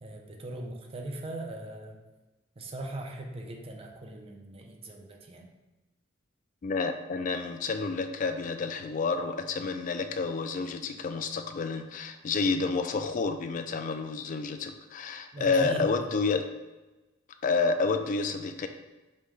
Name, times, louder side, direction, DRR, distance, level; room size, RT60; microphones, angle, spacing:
voice 1, 0.0-2.0 2.6-5.5 15.3-15.8, right 1 dB, 30° right, 1 dB, 0.5 m, -40 dB
voice 2, 6.6-16.5 17.4-18.7, left 4 dB, 45° left, 7 dB, 0.3 m, -29 dB
5.3 x 2.2 x 3.2 m, 1.1 s
head